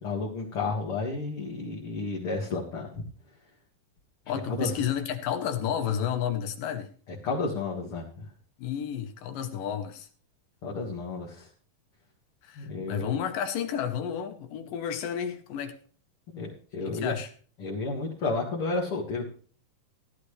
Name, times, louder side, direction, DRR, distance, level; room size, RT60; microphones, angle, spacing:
voice 1, 0.0-3.0 4.5-4.8 7.2-8.3 10.6-11.5 12.6-13.1 16.3-17.2 17.6-19.3, left 3 dB, 45° left, 2.3 m, -32 dB
voice 2, 4.3-6.9 8.6-10.1 12.4-15.8 16.8-17.3, left 9 dB, 75° left, 2.6 m, -31 dB
15.5 x 11.0 x 3.3 m
omnidirectional pair, 4.2 m